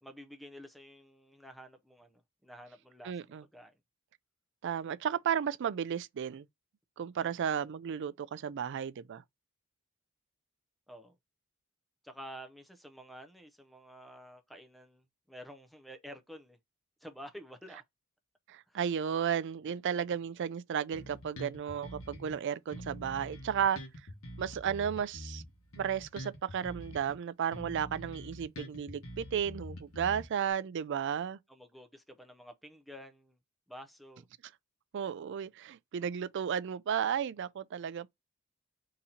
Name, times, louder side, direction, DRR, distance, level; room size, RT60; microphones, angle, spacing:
voice 1, 0.0-3.7 7.2-7.5 10.9-11.1 12.0-16.6 17.0-17.8 18.7-18.8 31.5-33.4 33.7-34.3, equal, ahead, 0.5 m, -50 dB
voice 2, 3.0-3.4 4.6-6.5 7.0-9.2 18.5-23.8 24.4-25.4 25.8-31.4 34.9-38.1, right 8 dB, 55° right, 0.4 m, -33 dB
Bass guitar, 20.9-22.4 22.7-27.2 27.5-30.5, equal, 70° left, 1.3 m, -45 dB
3.9 x 2.9 x 4.1 m
head